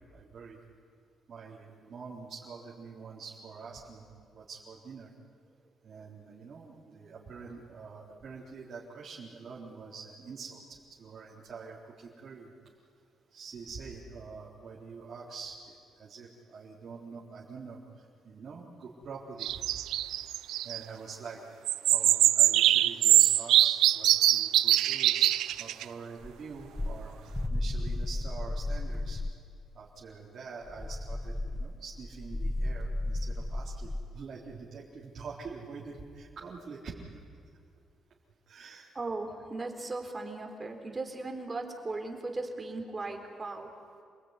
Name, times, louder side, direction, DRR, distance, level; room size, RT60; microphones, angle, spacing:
voice 1, 0.1-0.6 1.3-4.1 4.3-5.1 5.8-12.5 13.3-19.8 20.6-21.4 21.9-29.2 29.7-37.0 38.5-38.9, right 5 dB, 50° right, -5 dB, 4.1 m, -45 dB
sound 1, 19.4-20.8 21.7-25.8, right 13 dB, 85° right, 0.6 m, -23 dB
sound 2, 26.2-29.4 30.6-34.1, left 1 dB, 20° left, 1.1 m, -34 dB
voice 2, 39.0-43.7, right 2 dB, 25° right, 4 dB, 4.0 m, -37 dB
28.0 x 19.5 x 9.8 m, 2.3 s
cardioid pair, 90°, 0 cm